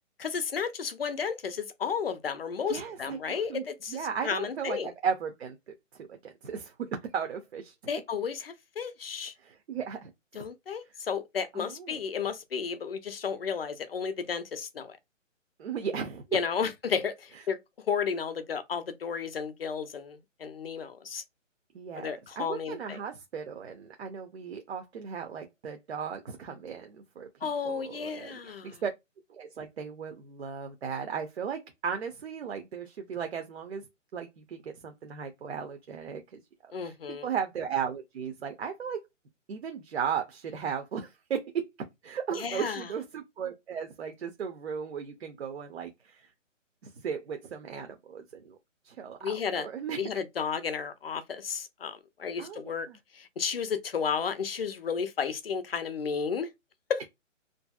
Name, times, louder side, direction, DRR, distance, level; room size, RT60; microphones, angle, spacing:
voice 1, 0.2-4.9 7.9-9.3 10.3-15.0 16.3-21.2 22.0-23.0 27.4-28.8 36.7-37.3 42.3-42.9 49.2-49.7 50.0-52.9 53.1-56.5 56.9-57.1, left 6 dB, 50° left, 0.4 m, -33 dB
voice 2, 2.7-5.6 6.0-7.7 9.4-10.1 11.5-12.0 15.6-16.2 21.7-28.9 29.3-33.8 34.1-36.9 37.2-39.0 39.5-41.6 42.0-46.3 46.8-48.6 48.8-50.0 52.4-53.0, right 7 dB, 55° right, 0.5 m, -36 dB
2.7 x 2.6 x 2.2 m
hypercardioid pair, 165°, 39 cm